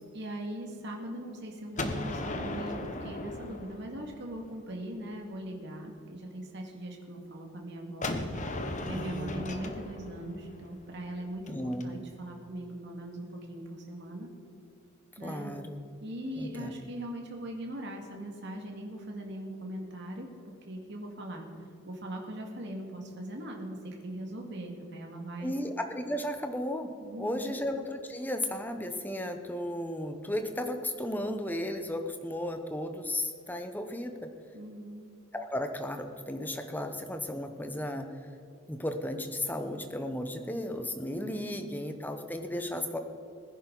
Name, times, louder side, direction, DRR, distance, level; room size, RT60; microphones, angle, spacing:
voice 1, 0.1-8.1 8.8-14.3 15.2-15.5 16.0-20.3 20.7-21.5 21.9-25.5 27.0-27.6 34.5-35.1 41.1-41.7, right 1 dB, 55° right, 1 dB, 2.1 m, -40 dB
Gunshot gunfire, 1.8-4.6 8.0-11.8, left 2 dB, 35° left, 1.0 m, -37 dB
voice 2, 8.9-9.4 11.5-11.9 15.2-15.8 16.4-16.7 25.4-34.3 35.3-38.1 38.7-43.0, left 1 dB, 10° left, 6 dB, 0.9 m, -34 dB
20.5 x 10.0 x 4.0 m, 2.6 s
head